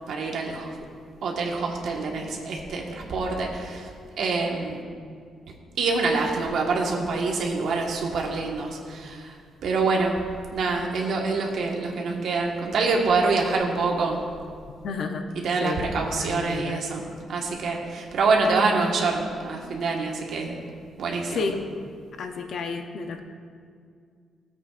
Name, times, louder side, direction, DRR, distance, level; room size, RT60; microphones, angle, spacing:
voice 1, 0.1-0.7 1.2-3.9 4.2-4.8 5.8-9.3 9.6-10.1 10.5-14.2 15.3-17.0 17.3-20.6 21.0-21.5, right 3 dB, 65° right, -1 dB, 1.5 m, -26 dB
voice 2, 14.8-16.8 21.3-21.6 22.2-23.2, left 4 dB, 50° left, 6 dB, 0.7 m, -31 dB
16.5 x 8.2 x 2.5 m, 2.2 s
cardioid pair, 145°, 0 cm